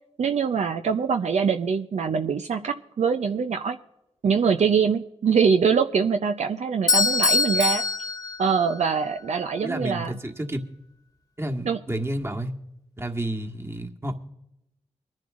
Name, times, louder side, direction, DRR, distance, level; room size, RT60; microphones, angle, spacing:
voice 1, 0.2-3.8 4.2-7.8 8.4-10.1 11.7-11.8, right 6 dB, 70° right, 5 dB, 0.6 m, -23 dB
Bell / Doorbell, 6.9-9.0, left 4 dB, 30° left, 1.4 m, -23 dB
voice 2, 9.6-10.6 11.4-12.5 13.0-14.2, right 1 dB, 20° right, 3 dB, 1.5 m, -30 dB
24.5 x 10.5 x 2.5 m, 0.86 s
cardioid pair, 40°, 12 cm